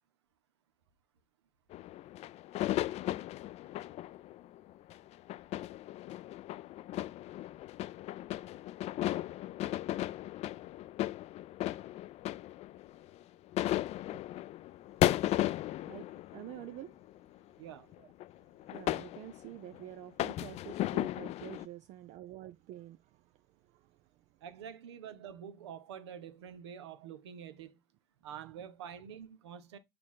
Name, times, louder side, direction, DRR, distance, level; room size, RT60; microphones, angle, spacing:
sound 1, 1.7-13.2 13.5-17.2 17.9-18.3 18.6-19.8 20.2-21.7, left 15 dB, 50° left, 0.4 m, -36 dB
voice 1, 15.9-17.0 18.0-18.1 18.7-24.4, right 14 dB, 60° right, 0.5 m, -48 dB
voice 2, 17.6-17.9 24.4-27.8 28.2-29.8, right 8 dB, 85° right, 0.9 m, -47 dB
6.7 x 4.8 x 3.6 m
hypercardioid pair, 70°, 14 cm